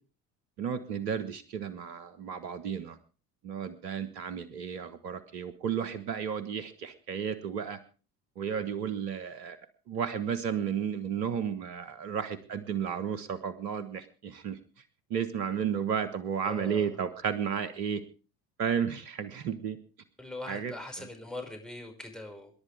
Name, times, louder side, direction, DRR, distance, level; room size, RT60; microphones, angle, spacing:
voice 1, 0.6-3.0 3.4-7.8 8.4-9.6 9.9-14.8 15.1-18.0 18.6-19.8 20.5-21.1, right 7 dB, 80° right, 13 dB, 1.4 m, -33 dB
voice 2, 16.4-16.9 20.2-22.5, left 2 dB, ahead, 2 dB, 5.5 m, -41 dB
27.0 x 11.0 x 3.4 m, 0.35 s
hypercardioid pair, 60°, 48 cm